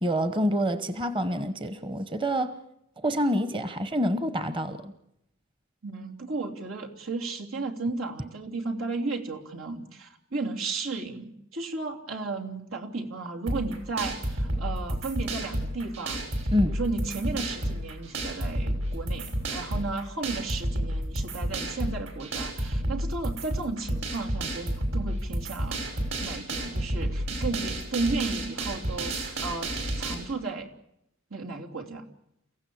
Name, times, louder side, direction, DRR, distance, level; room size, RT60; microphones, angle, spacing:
voice 1, 0.0-2.6 3.0-4.9 16.5-16.8, equal, 25° right, 1.1 m, -27 dB
voice 2, 5.8-25.9 26.2-30.7 31.3-32.0, right 3 dB, 85° right, 3.2 m, -34 dB
sound 1, 13.5-30.1, right 1 dB, 60° right, 6.5 m, -31 dB
30.0 x 16.0 x 8.6 m
head